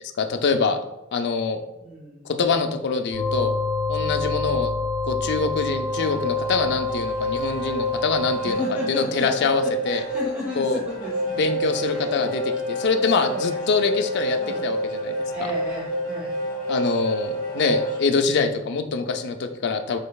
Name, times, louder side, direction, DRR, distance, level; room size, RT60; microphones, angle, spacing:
voice 1, 0.2-0.8 1.1-1.6 2.2-3.5 3.9-4.7 5.0-10.0 10.6-10.8 11.4-15.5 16.7-20.0, left 4 dB, 55° left, 6 dB, 0.4 m, -24 dB
voice 2, 1.8-2.3 4.2-4.4 8.4-11.5 11.8-14.0 14.4-14.7 15.3-16.4, left 1 dB, 10° right, -5 dB, 0.7 m, -35 dB
sound 1, 3.1-8.5, left 3 dB, 65° right, 1.4 m, -27 dB
sound 2, 5.5-18.1, right 1 dB, 25° left, 1.4 m, -29 dB
5.2 x 3.9 x 2.3 m, 0.95 s
head